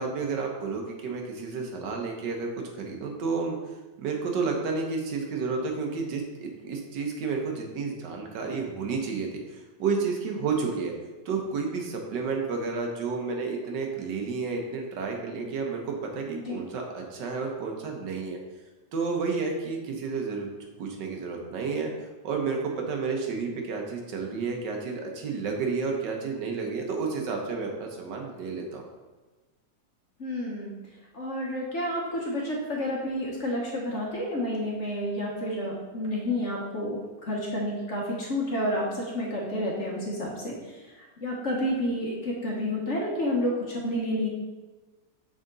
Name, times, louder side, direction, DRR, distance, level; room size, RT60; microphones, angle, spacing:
voice 1, 0.0-2.5 2.7-3.6 4.0-10.9 11.2-18.4 18.9-20.5 20.8-21.9 22.2-28.8, right 4 dB, 75° right, 2 dB, 1.5 m, -31 dB
voice 2, 30.2-30.7 31.1-40.5 41.2-44.3, left 1 dB, 45° left, -3 dB, 1.3 m, -30 dB
6.4 x 4.9 x 3.8 m, 1.2 s
omnidirectional pair, 2.0 m